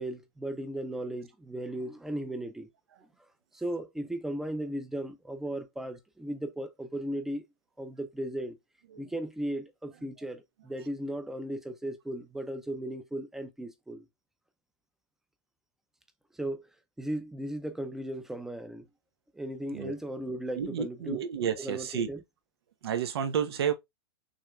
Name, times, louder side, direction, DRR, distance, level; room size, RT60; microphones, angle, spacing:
voice 1, 0.0-2.7 3.5-7.4 7.8-8.6 9.0-14.1 16.3-16.7 17.0-18.9 19.3-21.2 21.6-22.2, right 1 dB, 5° right, 0.6 m, -36 dB
voice 2, 20.6-22.1 22.8-23.7, right 8 dB, 80° right, 1.1 m, -31 dB
6.3 x 3.4 x 2.3 m
supercardioid pair, 155°, 13 cm